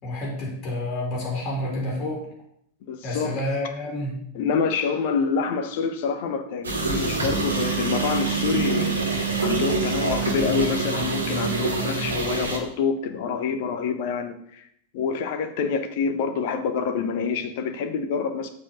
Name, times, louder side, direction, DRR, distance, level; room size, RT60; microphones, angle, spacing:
voice 1, 0.0-2.2 3.0-4.1, left 1 dB, 35° left, -2 dB, 3.4 m, -29 dB
voice 2, 2.9-3.3 4.3-9.0 9.4-14.7 14.9-18.5, left 6 dB, 50° left, 7 dB, 1.1 m, -27 dB
sound 1, 6.6-12.6, right 4 dB, 75° right, 1.8 m, -25 dB
7.3 x 4.9 x 7.0 m, 0.71 s
figure-of-eight pair, 90°, 0 cm